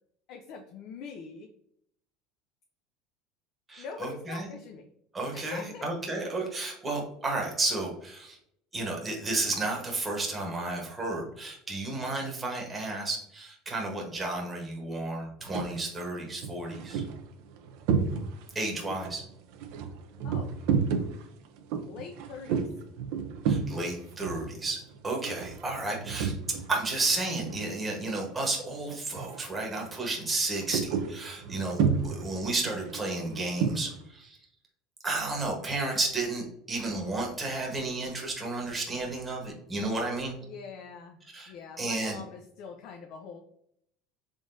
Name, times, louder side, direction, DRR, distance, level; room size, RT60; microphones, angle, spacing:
voice 1, 0.3-1.5 3.8-4.9 5.3-5.9 20.2-20.5 21.8-22.7 40.4-41.2 41.5-43.4, left 5 dB, 60° left, 3 dB, 0.5 m, -43 dB
voice 2, 3.7-4.5 5.1-8.4 8.7-17.0 18.5-19.2 23.5-24.8 25.0-26.3 26.7-34.4 35.0-40.4 41.3-42.2, right 2 dB, 15° right, 0 dB, 1.0 m, -32 dB
sound 1, 15.4-15.8 16.3-18.6 18.9-26.8 27.0-28.1 28.4-28.7 29.1-29.5 29.8-34.0, right 6 dB, 75° right, 0.5 m, -31 dB
3.7 x 3.5 x 2.6 m, 0.70 s
supercardioid pair, 130°, 0 cm